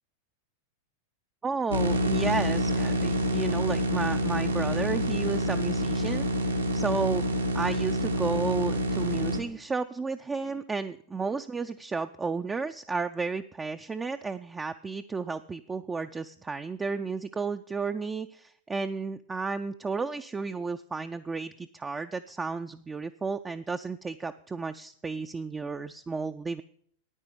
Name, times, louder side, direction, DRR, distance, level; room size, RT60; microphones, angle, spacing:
voice 1, 1.4-26.6, right 4 dB, 15° right, 7 dB, 0.4 m, -33 dB
sound 1, 1.7-9.4, equal, 80° right, 1.5 m, -27 dB
9.9 x 9.6 x 6.7 m, 0.63 s
figure-of-eight pair, 90°, 0 cm